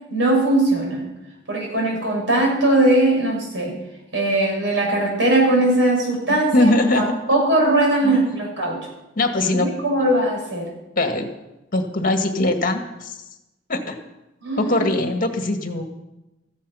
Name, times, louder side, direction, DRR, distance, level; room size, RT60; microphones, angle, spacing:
voice 1, 0.1-1.1 1.5-3.7 4.1-8.8 9.4-10.7 14.4-14.9, right 1 dB, 85° right, 0 dB, 6.5 m, -20 dB
voice 2, 6.5-7.1 8.0-8.2 9.2-9.7 11.0-11.3 11.7-13.2 13.7-14.0 14.6-15.8, left 2 dB, 50° left, 5 dB, 1.9 m, -21 dB
14.5 x 14.5 x 5.7 m, 0.96 s
head